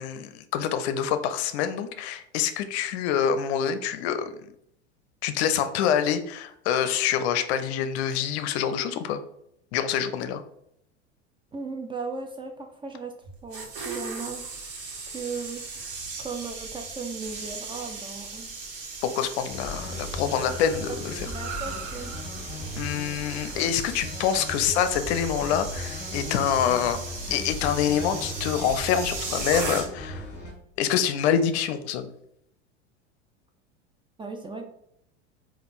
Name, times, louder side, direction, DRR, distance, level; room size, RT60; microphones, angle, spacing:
voice 1, 0.0-4.5 5.2-9.2 9.7-10.4 19.0-21.3 22.8-27.0 27.3-30.2 30.8-32.1, left 8 dB, 65° left, 10 dB, 0.6 m, -26 dB
voice 2, 11.5-13.2 13.4-14.4 15.1-15.6 16.2-18.5 20.9-21.0 21.2-22.1 34.2-34.7, right 4 dB, 15° right, 4 dB, 0.3 m, -36 dB
sound 1, 13.3-30.2 30.5-30.8, right 4 dB, 55° right, 1.4 m, -38 dB
Car, 15.5-25.1, right 7 dB, 85° right, 0.7 m, -46 dB
sound 2, 19.5-30.5, left 1 dB, 30° left, 1.5 m, -37 dB
3.5 x 2.5 x 4.0 m, 0.74 s
hypercardioid pair, 100°, 34 cm